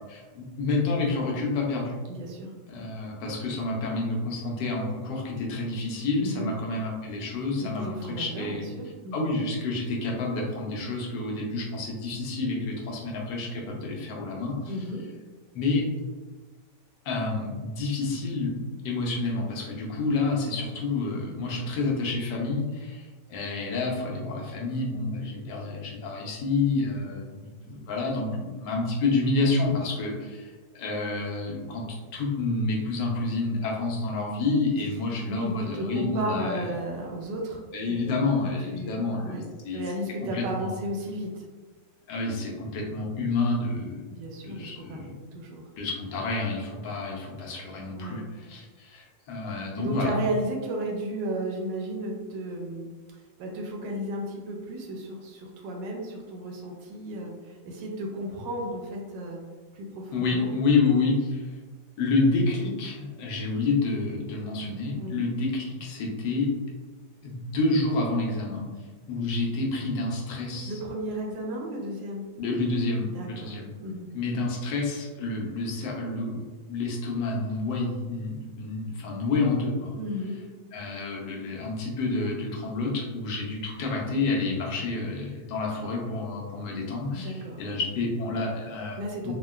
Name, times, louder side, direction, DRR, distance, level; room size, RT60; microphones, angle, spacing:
voice 1, 0.1-2.0 2.7-8.7 9.1-14.8 15.5-15.9 17.0-31.8 32.1-36.7 37.7-39.8 40.3-40.7 42.1-44.0 44.4-45.1 45.8-50.1 60.1-61.5 62.0-66.5 67.2-68.6 69.1-70.7 72.4-73.7 74.1-79.9 80.7-89.0 89.2-89.3, left 3 dB, 80° left, -1 dB, 1.2 m, -29 dB
voice 2, 2.1-2.5 6.2-6.5 7.7-9.3 14.7-15.0 35.2-39.4 39.7-41.4 44.1-45.6 47.9-48.2 49.8-52.9 53.4-59.4 59.7-60.5 61.0-61.1 65.0-65.2 70.7-72.2 73.1-73.5 73.8-74.1 80.0-80.4 87.2-87.6 89.0-89.3, right 1 dB, 80° right, 0 dB, 1.2 m, -34 dB
3.6 x 2.1 x 2.2 m, 1.3 s
omnidirectional pair, 2.0 m